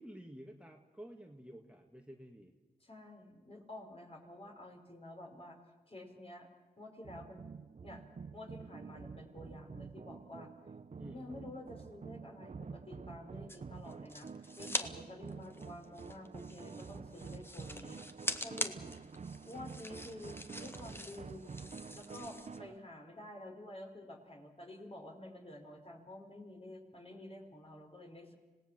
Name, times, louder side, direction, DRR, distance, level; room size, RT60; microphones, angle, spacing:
voice 1, 0.0-2.5 11.0-11.3 18.8-19.1 22.6-22.7, right 1 dB, 5° right, 2 dB, 2.0 m, -51 dB
voice 2, 2.8-5.6 5.9-6.5 6.8-7.4 7.8-8.0 8.3-10.5 11.1-14.3 14.6-18.0 18.4-18.8 19.4-21.6 21.9-28.3, left 1 dB, 35° left, 2 dB, 4.8 m, -50 dB
sound 1, 7.0-22.7, right 5 dB, 40° right, 0.6 m, -49 dB
sound 2, 13.5-14.9 15.2-22.6, left 1 dB, 15° left, 1.7 m, -43 dB
26.0 x 18.0 x 7.5 m, 1.3 s
cardioid pair, 45°, 17 cm